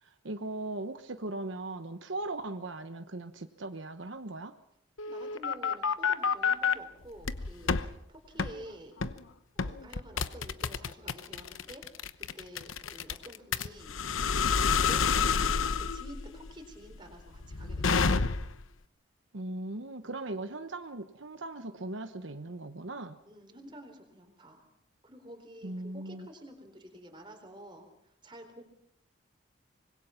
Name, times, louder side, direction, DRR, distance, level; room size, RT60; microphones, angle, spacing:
voice 1, 0.0-4.5 19.3-23.2 25.6-26.3, right 2 dB, 75° right, 8 dB, 1.1 m, -39 dB
sound 1, 5.0-6.7 7.2-7.9 8.4-8.5 9.0-9.2 9.6-18.6, left 5 dB, 90° left, 0.9 m, -29 dB
voice 2, 5.1-9.0 9.5-11.8 12.2-13.9 14.5-18.4 23.2-24.7 25.0-28.6, right 1 dB, 25° right, 4 dB, 4.0 m, -50 dB
25.5 x 21.0 x 5.8 m, 0.76 s
head